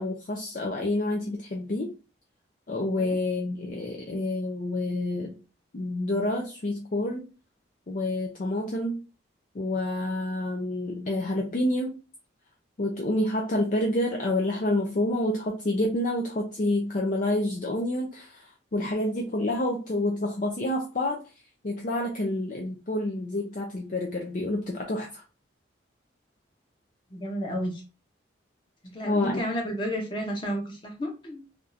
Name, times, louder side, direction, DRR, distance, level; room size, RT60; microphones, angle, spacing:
voice 1, 0.0-1.9 2.7-5.4 5.7-7.3 7.9-9.0 9.5-12.0 12.8-21.2 21.6-25.2 29.0-29.4, left 1 dB, 45° left, 0 dB, 0.5 m, -28 dB
voice 2, 27.1-27.8 28.8-31.5, equal, 25° left, 0 dB, 0.9 m, -32 dB
3.5 x 2.5 x 2.7 m, 0.31 s
head